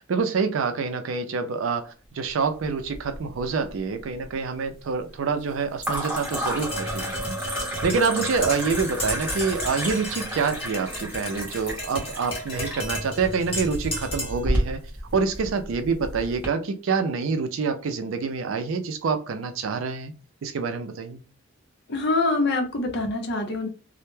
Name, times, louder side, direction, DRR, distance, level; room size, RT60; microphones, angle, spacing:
voice 1, 0.1-7.4 7.8-14.8 15.1-20.1 20.4-21.2, right 5 dB, 75° right, 0.4 m, -26 dB
sound 1, 2.6-3.4 3.7-4.3 5.8-16.5, equal, 10° right, 0.8 m, -32 dB
Tap, 6.2-14.5, left 1 dB, 30° left, 0.9 m, -34 dB
voice 2, 21.9-23.7, left 3 dB, 55° left, 0.6 m, -25 dB
2.1 x 2.1 x 3.0 m
head